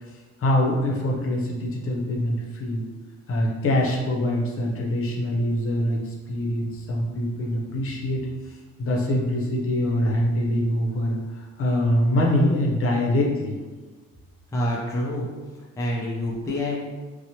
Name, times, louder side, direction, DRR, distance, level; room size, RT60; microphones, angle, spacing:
voice 1, 0.4-2.8 3.3-8.3 8.8-13.5, left 1 dB, 45° left, -2 dB, 0.7 m, -24 dB
voice 2, 14.5-15.3 15.5-16.8, left 1 dB, 10° left, -4 dB, 0.4 m, -27 dB
2.8 x 2.1 x 2.8 m, 1.3 s
cardioid pair, 90°, 30 cm